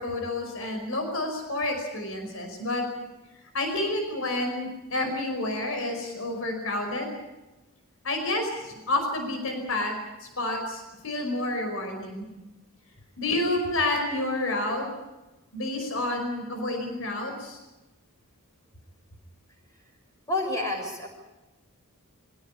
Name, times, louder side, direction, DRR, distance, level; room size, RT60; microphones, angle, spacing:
voice 1, 0.0-2.8 3.5-7.1 8.0-9.9 10.2-12.3 13.2-14.9 15.5-17.6, left 2 dB, 65° left, 4 dB, 5.3 m, -29 dB
voice 2, 20.3-21.1, left 2 dB, 15° left, 1 dB, 6.2 m, -28 dB
24.5 x 17.0 x 8.7 m, 1.1 s
head